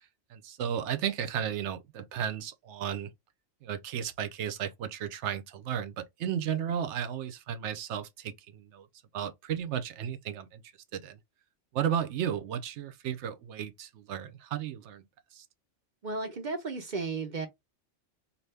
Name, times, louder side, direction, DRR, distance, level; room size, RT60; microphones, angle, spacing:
voice 1, 0.3-3.1 3.6-8.9 9.1-10.6 10.9-11.2 11.7-15.1 15.3-15.4, right 9 dB, 75° right, 0.9 m, -34 dB
voice 2, 16.0-17.5, right 3 dB, 50° right, 0.7 m, -34 dB
2.7 x 2.6 x 3.3 m
omnidirectional pair, 1.2 m